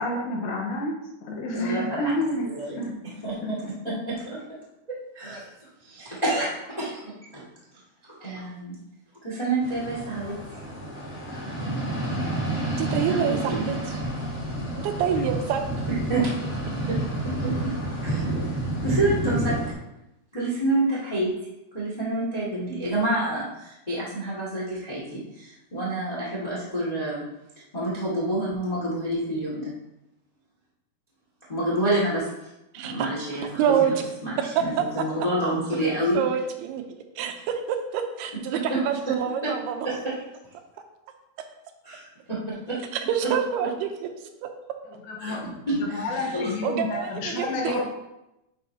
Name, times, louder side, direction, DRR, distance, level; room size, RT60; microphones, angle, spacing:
voice 1, 0.0-3.0 3.4-4.0 44.9-47.8, left 1 dB, 75° left, -1 dB, 2.9 m, -30 dB
voice 2, 1.5-2.0 2.5-2.8 3.2-3.3 3.8-3.9 4.2-4.4 4.9-5.5 5.8-7.4 8.2-8.7 9.2-10.3 13.0-13.6 16.1-16.3 16.9-17.0 17.4-17.5 18.0-18.3 18.6-19.5 20.3-21.3 21.7-27.2 27.7-29.7 31.5-32.3 32.8-33.9 34.2-36.2 38.7-38.8 39.4-39.5 39.8-40.1 41.8-42.0 42.3-42.8 43.2-43.3 45.2-45.3 45.7-46.5, right 1 dB, 45° left, -7 dB, 0.5 m, -28 dB
sound 1, 9.6-19.7, right 1 dB, 25° left, 1.3 m, -29 dB
voice 3, 12.7-14.0 14.8-15.6 32.7-32.9 33.6-33.9 34.4-34.8 36.1-36.8 37.2-37.3 37.7-39.9 42.9-43.9 44.4-44.5 46.6-47.8, right 8 dB, 90° right, 5 dB, 2.7 m, -26 dB
10.0 x 4.7 x 2.8 m, 0.90 s
omnidirectional pair, 4.5 m